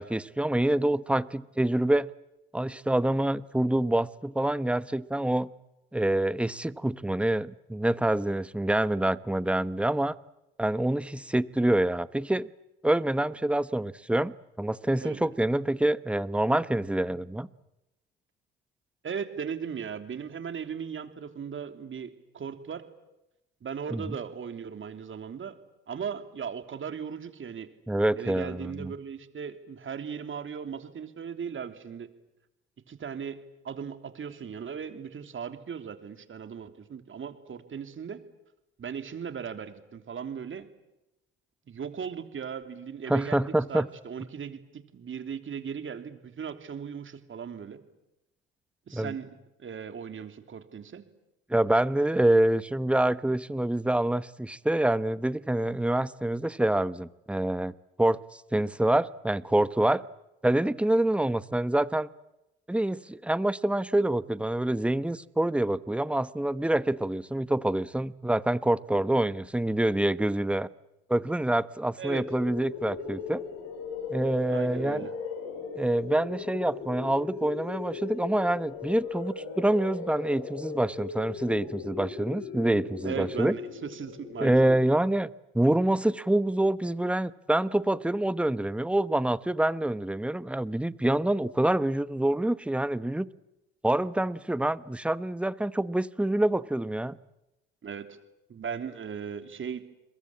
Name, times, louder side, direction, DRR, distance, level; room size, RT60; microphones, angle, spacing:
voice 1, 0.0-2.1 2.5-5.5 5.9-10.2 10.6-12.5 12.8-17.5 23.9-24.0 27.9-28.9 43.1-43.9 48.9-49.1 51.5-57.7 58.0-60.0 60.4-62.1 62.7-70.7 71.1-73.4 74.1-75.1 75.8-83.5 84.4-93.3 93.8-97.2, right 1 dB, 5° right, 16 dB, 1.0 m, -26 dB
voice 2, 19.0-22.8 23.6-25.5 25.9-27.7 28.2-32.1 32.9-33.4 33.6-38.2 38.8-40.7 41.7-47.8 48.9-49.3 49.6-51.0 72.0-72.2 74.5-75.1 83.0-84.8 97.8-98.2 98.5-99.8, right 7 dB, 45° right, 8 dB, 3.1 m, -37 dB
sound 1, 72.2-85.0, left 5 dB, 75° left, 7.1 m, -38 dB
29.0 x 22.0 x 8.6 m, 0.94 s
hypercardioid pair, 60°, 29 cm